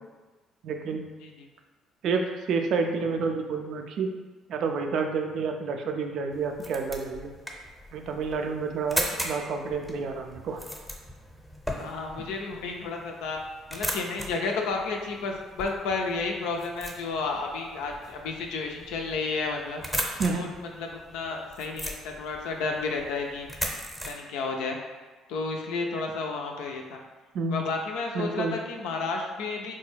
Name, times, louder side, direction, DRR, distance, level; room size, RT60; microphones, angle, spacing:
voice 1, 0.6-1.1 2.0-4.1 4.5-7.3 7.9-10.6 20.2-20.5 27.3-27.6 28.1-28.6, right 4 dB, 65° right, 4 dB, 0.3 m, -29 dB
sound 1, 6.3-24.1, equal, 5° left, 0.7 m, -38 dB
voice 2, 11.8-13.4 13.7-19.8 20.2-23.5 24.1-24.8 25.3-27.0 27.5-29.7, left 4 dB, 75° left, 2 dB, 0.4 m, -32 dB
3.7 x 2.2 x 3.2 m, 1.3 s
hypercardioid pair, 55°, 0 cm